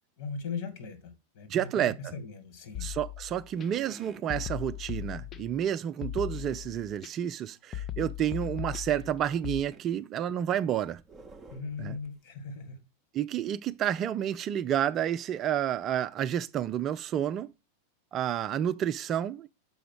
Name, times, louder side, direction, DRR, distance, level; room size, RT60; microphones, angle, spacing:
voice 1, 0.2-1.7 2.0-2.9 11.5-12.8, left 5 dB, 50° left, 2.1 m, -39 dB
voice 2, 1.5-2.0 2.8-11.0 11.8-11.9 13.1-17.5 18.1-19.5, right 10 dB, 30° right, 0.4 m, -30 dB
sound 1, 2.7-3.7 4.3-5.6 6.0-7.1 7.7-9.6, left 11 dB, 25° left, 0.6 m, -38 dB
Creaky Wood, 3.5-4.3 6.3-6.6 8.0-8.6 9.7-9.9 10.5-12.2, right 3 dB, 15° right, 0.9 m, -51 dB
6.9 x 5.0 x 4.7 m
figure-of-eight pair, 90°, 0 cm